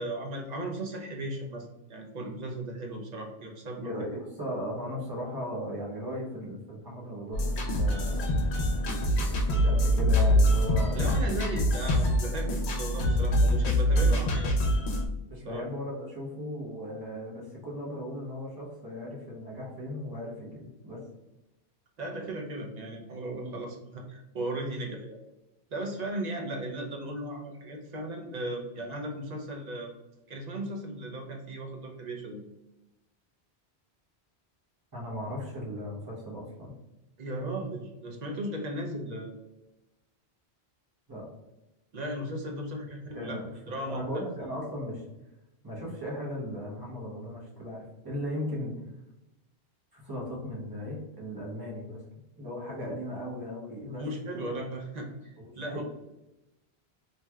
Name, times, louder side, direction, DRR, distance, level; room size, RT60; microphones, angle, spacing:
voice 1, 0.0-4.1 10.9-14.5 15.3-15.6 22.0-25.2 25.7-29.9 30.3-32.4 37.2-39.3 41.9-43.4 43.7-44.0 54.0-55.8, right 1 dB, 55° right, 1 dB, 0.5 m, -36 dB
voice 2, 3.8-8.4 9.2-11.0 14.3-14.4 15.3-21.0 23.3-23.6 34.9-36.8 41.1-41.3 42.8-45.0 45.6-48.8 49.9-52.0 52.4-54.1 54.3-54.6 55.4-55.8, equal, 25° right, -5 dB, 0.8 m, -37 dB
sound 1, 7.3-15.1, equal, 80° left, 0.9 m, -25 dB
3.0 x 2.7 x 2.2 m, 0.97 s
omnidirectional pair, 1.1 m